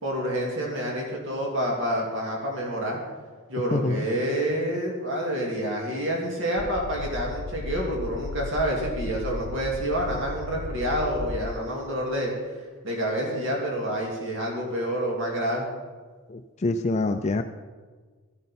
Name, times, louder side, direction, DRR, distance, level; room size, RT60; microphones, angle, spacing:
voice 1, 0.0-3.0 3.5-12.3 12.8-15.6, equal, 60° right, -2 dB, 2.3 m, -28 dB
voice 2, 3.7-4.1 16.3-17.4, left 2 dB, 30° left, 7 dB, 0.4 m, -26 dB
sound 1, 6.6-11.5, left 2 dB, 80° left, 0.9 m, -35 dB
15.0 x 10.5 x 4.2 m, 1.5 s
head